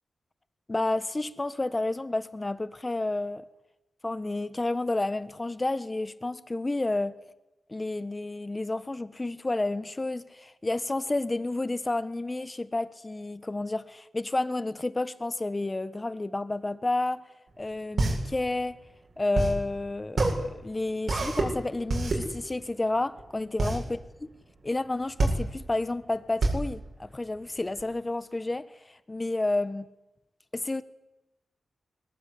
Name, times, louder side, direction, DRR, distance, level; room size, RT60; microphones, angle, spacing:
voice 1, 0.7-3.4 4.0-7.1 7.7-17.2 17.6-18.8 19.2-24.0 24.6-29.8 30.5-30.8, left 2 dB, 20° left, 1.3 m, -30 dB
sound 1, 17.5-27.8, right 2 dB, 55° right, 8.0 m, -28 dB
22.0 x 20.5 x 10.0 m
wide cardioid pair, 105°, 0 cm